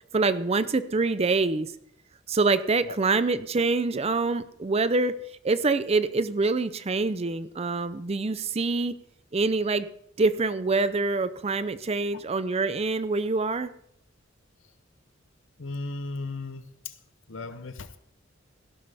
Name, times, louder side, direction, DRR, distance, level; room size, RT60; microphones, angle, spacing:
voice 1, 0.1-1.7 2.3-5.2 5.4-8.9 9.3-9.9 10.2-13.7, right 3 dB, 30° right, 14 dB, 0.5 m, -25 dB
voice 2, 15.6-17.0 17.3-18.0, left 3 dB, 75° left, 11 dB, 0.8 m, -36 dB
16.0 x 12.0 x 3.5 m, 0.70 s
head